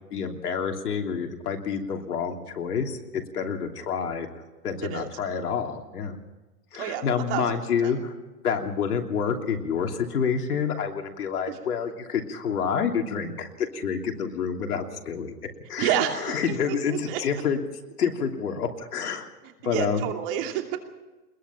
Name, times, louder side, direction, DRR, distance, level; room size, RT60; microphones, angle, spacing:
voice 1, 0.1-4.3 4.6-6.2 6.7-8.1 8.4-15.3 15.7-15.9 16.2-17.6 18.0-19.3 19.6-20.1, left 6 dB, 75° left, 3 dB, 3.1 m, -28 dB
voice 2, 6.8-7.9 11.5-11.6 15.8-17.4 19.6-20.8, right 10 dB, 35° right, 4 dB, 2.8 m, -30 dB
21.5 x 21.5 x 5.8 m, 1.2 s
hypercardioid pair, 150°, 46 cm